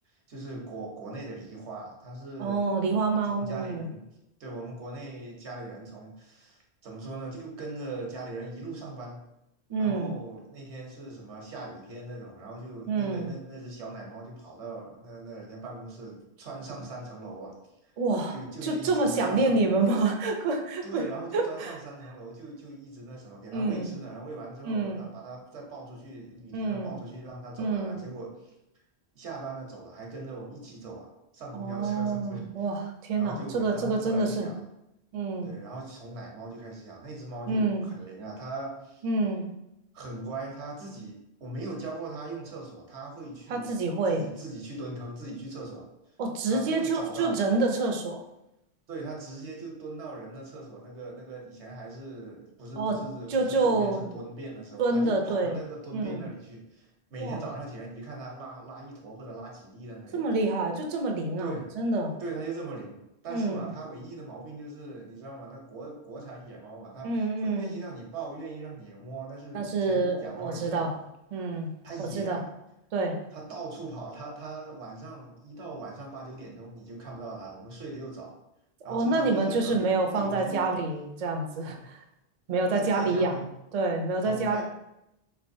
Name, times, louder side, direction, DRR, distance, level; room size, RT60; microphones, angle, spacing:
voice 1, 0.3-2.6 3.2-4.1 4.4-9.2 9.8-17.6 18.3-19.7 20.8-28.5 29.1-32.5 33.1-34.6 35.4-39.0 39.9-43.8 44.1-45.9 46.5-47.4 48.9-60.2 61.4-61.7 62.2-63.0 63.2-67.1 67.4-70.9 71.8-72.4 73.3-78.3 78.8-79.9 80.1-80.7 82.7-83.4 84.2-84.6, right 2 dB, 85° right, -1 dB, 1.2 m, -40 dB
voice 2, 2.4-3.9 9.7-10.1 12.9-13.3 18.0-18.3 18.6-21.0 21.3-21.7 23.5-23.9 24.6-25.0 26.5-26.9 27.6-28.0 31.5-34.5 35.1-35.5 37.5-37.8 39.0-39.5 43.5-44.3 46.2-48.2 52.8-53.0 53.3-54.0 54.8-55.6 55.9-56.2 57.2-57.4 60.1-62.1 63.3-63.7 67.0-67.7 69.5-70.9 71.3-71.7 72.0-72.4 72.9-73.2 78.9-82.0 82.5-83.4 83.7-84.6, right 3 dB, 55° right, 3 dB, 0.4 m, -27 dB
3.4 x 3.2 x 2.6 m, 0.86 s
omnidirectional pair, 1.1 m